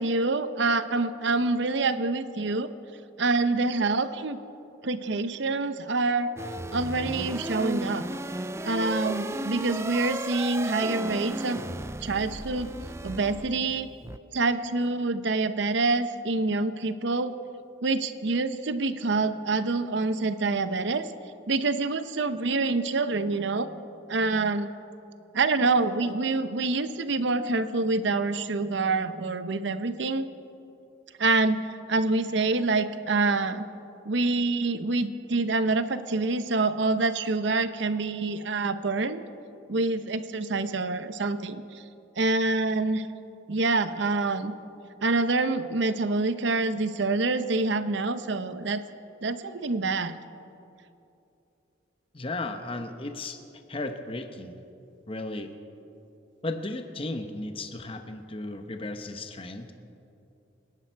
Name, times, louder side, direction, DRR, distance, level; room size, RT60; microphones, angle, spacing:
voice 1, 0.0-2.7 3.2-4.4 4.8-6.3 6.7-8.1 8.6-11.6 12.0-12.7 13.0-13.9 14.3-17.3 17.8-21.1 21.5-23.7 24.1-24.7 25.3-30.3 31.2-31.6 31.9-33.6 34.0-39.2 39.7-41.8 42.2-43.1 43.5-44.5 45.0-48.8 49.2-50.2, right 3 dB, 65° right, 11 dB, 0.7 m, -26 dB
sound 1, 6.4-14.2, right 1 dB, 15° right, 0.3 m, -34 dB
voice 2, 52.1-53.4 53.7-54.6 55.1-55.5 56.4-59.7, left 2 dB, 30° left, 7 dB, 0.9 m, -35 dB
26.0 x 11.0 x 4.6 m, 2.7 s
head